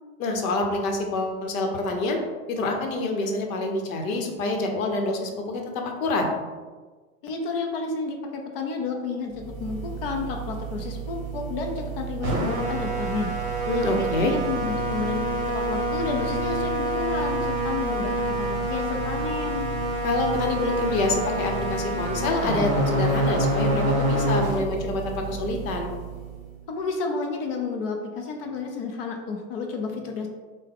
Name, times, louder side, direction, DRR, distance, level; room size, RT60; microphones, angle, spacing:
voice 1, 0.2-2.2 2.5-6.2 13.7-14.3 20.0-25.9, left 2 dB, 65° left, 3 dB, 0.8 m, -27 dB
voice 2, 7.2-13.3 13.9-19.7 26.7-30.3, left 4 dB, 40° left, 3 dB, 0.5 m, -31 dB
sound 1, 9.3-26.5, right 1 dB, 30° right, 0.9 m, -27 dB
3.7 x 2.1 x 3.7 m, 1.4 s
supercardioid pair, 150°, 45 cm